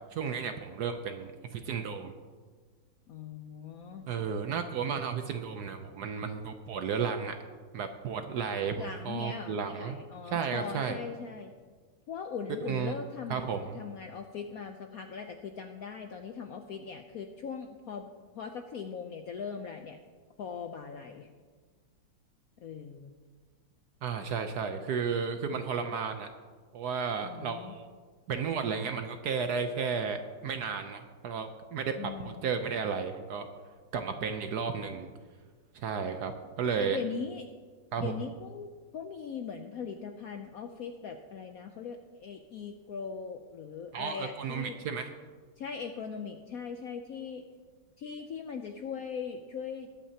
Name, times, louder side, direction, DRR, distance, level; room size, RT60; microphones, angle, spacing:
voice 1, 0.1-2.1 4.1-7.3 7.7-10.0 10.2-11.0 12.7-13.0 13.3-13.8 24.0-26.3 26.7-27.9 28.3-33.5 33.9-35.1 35.7-36.3 36.6-37.0 37.9-38.1 43.9-45.1, right 6 dB, 70° right, 7 dB, 1.0 m, -33 dB
voice 2, 3.1-4.1 8.8-11.5 12.1-13.4 13.7-20.0 20.4-21.3 22.6-23.1 27.2-27.7 32.0-32.5 36.8-37.5 38.0-44.8 45.6-47.4 48.0-49.9, left 6 dB, 70° left, 5 dB, 0.8 m, -40 dB
20.0 x 8.8 x 2.8 m, 1.5 s
omnidirectional pair, 2.2 m